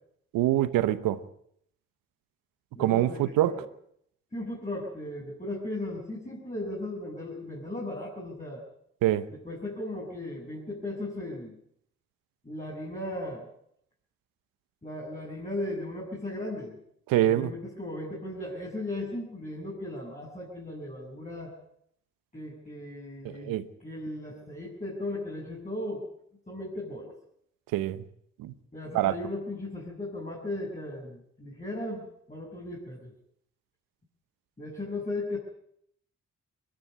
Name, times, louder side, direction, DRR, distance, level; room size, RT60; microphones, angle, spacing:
voice 1, 0.3-1.2 2.8-3.5 9.0-9.3 17.1-17.5 23.2-23.6 27.7-28.0 28.4-28.5 28.9-29.2, right 13 dB, 85° right, 1.0 m, -25 dB
voice 2, 2.7-3.6 4.3-8.6 9.3-11.6 12.4-13.5 14.8-16.8 17.2-21.5 22.3-26.1 26.5-27.1 28.7-33.1 34.6-35.4, left 1 dB, 20° left, 7.4 m, -37 dB
21.5 x 13.5 x 9.6 m
supercardioid pair, 45°, 33 cm